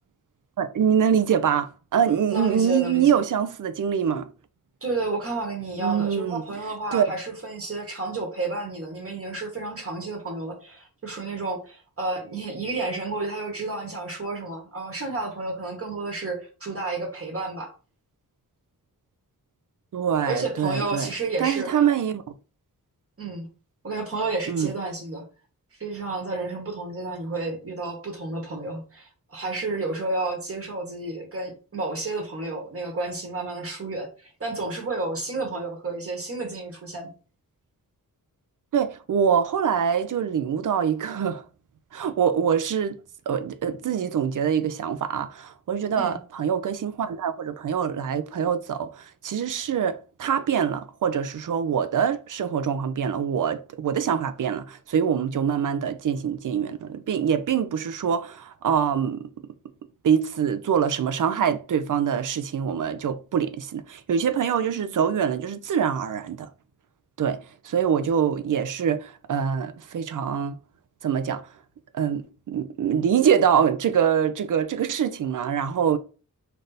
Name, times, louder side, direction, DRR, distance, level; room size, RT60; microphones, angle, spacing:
voice 1, 0.6-4.3 5.8-6.4 6.9-7.1 19.9-21.1 21.4-22.2 24.5-24.7 38.7-41.4 41.9-43.0 43.3-59.3 60.0-66.5 67.2-70.5 71.0-71.4 71.9-76.0, right 8 dB, 60° right, 0.5 m, -24 dB
voice 2, 2.3-3.2 4.8-17.7 20.2-21.7 23.2-23.5 23.8-25.2 25.8-37.1 45.9-46.2, right 2 dB, 40° right, 1.2 m, -31 dB
3.3 x 2.6 x 4.0 m
wide cardioid pair, 135°, 35 cm